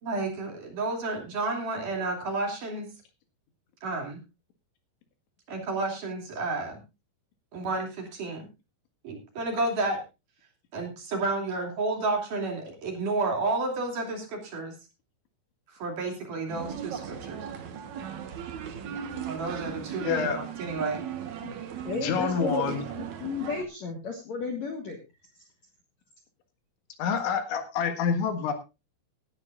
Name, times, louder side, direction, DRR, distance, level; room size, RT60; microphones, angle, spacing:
voice 1, 0.0-2.9 3.8-4.2 5.5-6.8 7.5-8.5 9.0-10.0 10.7-14.7 15.7-17.4 19.2-20.3 20.6-21.0, right 3 dB, 50° right, 1 dB, 4.0 m, -31 dB
sound 1, 16.5-23.6, right 8 dB, 70° right, 1.8 m, -37 dB
voice 2, 20.0-20.5 21.4-21.6 21.9-22.8 27.0-28.5, left 6 dB, 85° left, 6 dB, 4.1 m, -28 dB
voice 3, 21.8-25.0, left 4 dB, 55° left, 3 dB, 2.1 m, -33 dB
18.0 x 11.5 x 2.5 m, 0.26 s
omnidirectional pair, 5.3 m